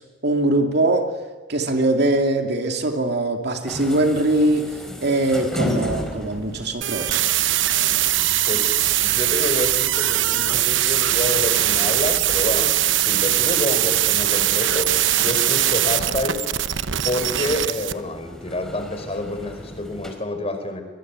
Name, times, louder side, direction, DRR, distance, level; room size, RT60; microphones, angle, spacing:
voice 1, 0.2-1.2 1.5-7.2, right 2 dB, 60° right, 4 dB, 2.6 m, -22 dB
sound 1, 3.6-20.1, equal, 5° left, 4.6 m, -36 dB
sound 2, 6.8-17.9, right 13 dB, 75° right, 1.0 m, -21 dB
voice 2, 8.5-16.7 17.0-20.8, left 2 dB, 30° left, 7 dB, 4.5 m, -28 dB
23.0 x 22.5 x 9.6 m, 1.3 s
head